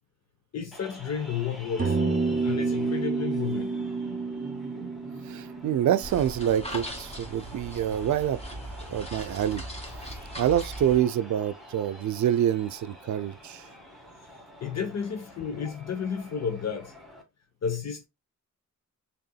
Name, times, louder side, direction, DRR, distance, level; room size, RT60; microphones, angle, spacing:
voice 1, 0.5-3.8 4.2-4.3 14.6-16.9 17.6-18.1, left 7 dB, 55° left, 0.8 m, -32 dB
sound 1, 0.7-17.2, equal, ahead, 1.7 m, -46 dB
sound 2, 1.8-6.5, right 4 dB, 25° right, 1.4 m, -29 dB
voice 2, 5.3-8.4 8.9-9.6 10.4-13.6, right 10 dB, 70° right, 0.5 m, -26 dB
sound 3, 6.0-11.0, equal, 20° left, 1.9 m, -39 dB
6.7 x 3.5 x 2.2 m
wide cardioid pair, 125°, 31 cm